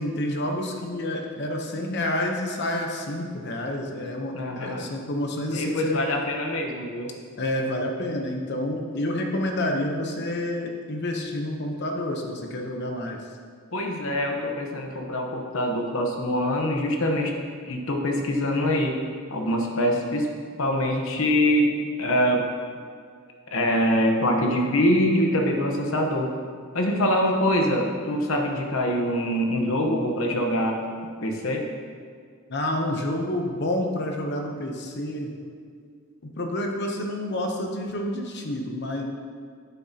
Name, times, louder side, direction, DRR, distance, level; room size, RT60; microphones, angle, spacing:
voice 1, 0.0-6.0 7.4-13.2 32.5-35.3 36.2-39.0, left 1 dB, 50° left, 2 dB, 0.8 m, -29 dB
voice 2, 4.3-4.8 5.5-7.1 13.7-17.3 17.6-19.0 19.3-20.3 20.6-22.5 23.5-26.3 26.7-30.8 31.2-31.6, equal, 70° left, 2 dB, 1.0 m, -24 dB
9.3 x 7.6 x 2.9 m, 2.1 s
head